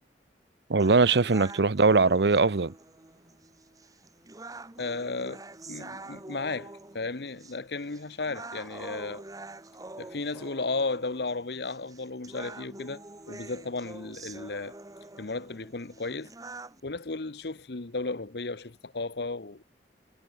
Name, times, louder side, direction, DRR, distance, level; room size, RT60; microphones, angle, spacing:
voice 1, 0.7-2.7, right 4 dB, 70° right, 0.8 m, -21 dB
sound 1, 0.8-16.8, right 2 dB, 20° right, 1.1 m, -46 dB
voice 2, 4.8-9.2 10.0-14.8 15.2-16.3 16.8-19.6, left 3 dB, 65° left, 1.0 m, -34 dB
head